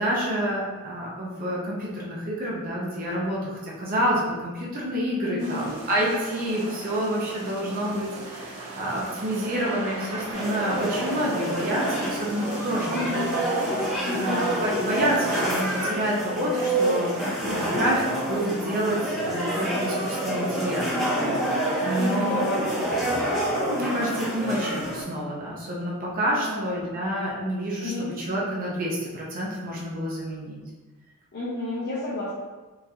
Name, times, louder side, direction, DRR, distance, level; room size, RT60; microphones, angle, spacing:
voice 1, 0.0-13.0 14.2-20.8 21.3-21.4 21.8-22.6 23.7-30.6, equal, 40° right, -5 dB, 0.6 m, -28 dB
voice 2, 5.2-5.7 12.9-13.3 14.0-14.5 17.4-17.8 21.9-22.5 26.3-26.7 27.8-28.1 31.3-32.3, left 2 dB, 50° left, -9 dB, 0.7 m, -31 dB
sound 1, 5.4-15.8, right 2 dB, 90° right, 0.8 m, -38 dB
sound 2, 10.3-25.0, right 1 dB, ahead, 1.0 m, -27 dB
3.8 x 2.5 x 2.8 m, 1.2 s
head